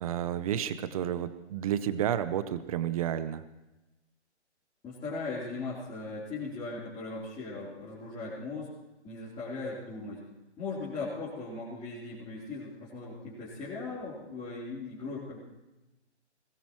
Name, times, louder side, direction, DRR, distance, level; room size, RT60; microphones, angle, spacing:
voice 1, 0.0-3.4, right 10 dB, 30° right, 13 dB, 0.9 m, -31 dB
voice 2, 4.8-8.7 9.0-10.2 10.6-15.4, left 3 dB, 15° left, -9 dB, 3.9 m, -38 dB
21.5 x 19.5 x 3.2 m, 1.0 s
hypercardioid pair, 145°, 35 cm